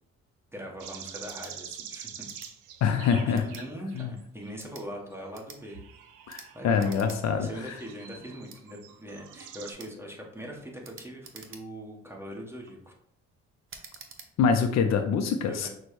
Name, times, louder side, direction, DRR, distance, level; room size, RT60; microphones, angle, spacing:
voice 1, 0.5-2.3 3.1-5.8 6.5-7.0 7.4-12.9 15.4-15.7, equal, 10° right, -2 dB, 1.2 m, -41 dB
sound 1, 0.8-4.5 5.1-9.7, right 8 dB, 90° right, 0.5 m, -46 dB
sound 2, 1.3-1.5 2.2-2.5 3.3-3.7 4.5-4.9 5.3-5.6 6.3-6.5 6.8-7.2 7.5-7.6 8.5-8.6 9.8-10.0 10.8-11.9 12.4-12.8 13.7-14.3, right 5 dB, 45° right, 0.7 m, -48 dB
voice 2, 2.8-3.4 4.0-4.1 6.3-7.5 14.4-15.7, left 6 dB, 60° left, 7 dB, 0.5 m, -25 dB
6.1 x 2.2 x 3.1 m, 0.70 s
cardioid pair, 90°, 30 cm